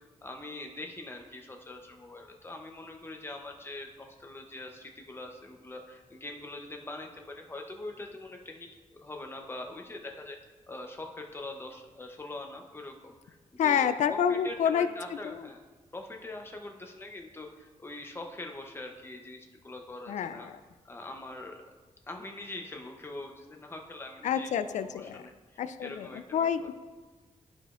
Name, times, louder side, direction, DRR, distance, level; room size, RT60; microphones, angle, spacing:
voice 1, 0.0-8.7 9.0-10.4 10.7-15.6 15.9-20.5 20.8-21.6 22.1-24.5 24.8-26.7, left 2 dB, 20° left, 3 dB, 0.7 m, -43 dB
voice 2, 13.6-14.9 15.2-15.5 20.1-20.6 24.2-25.2 25.6-26.7, left 8 dB, 70° left, 11 dB, 0.4 m, -28 dB
13.0 x 5.0 x 2.5 m, 1.3 s
wide cardioid pair, 160°, 13 cm